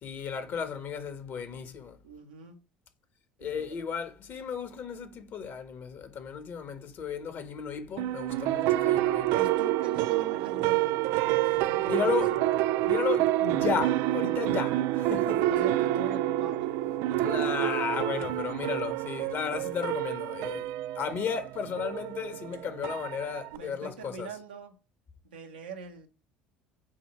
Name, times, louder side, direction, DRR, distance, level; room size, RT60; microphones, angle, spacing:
voice 1, 0.0-2.0 3.4-9.4 11.5-12.3 12.8-15.5 17.2-24.3, left 6 dB, 50° left, 1.7 m, -34 dB
voice 2, 2.0-2.6 3.4-3.8 9.3-12.5 15.5-16.7 23.5-24.8 25.2-26.1, right 4 dB, 85° right, 1.4 m, -42 dB
sound 1, 8.0-23.6, right 14 dB, 60° right, 0.4 m, -28 dB
8.4 x 2.9 x 5.8 m
hypercardioid pair, 65°, 5 cm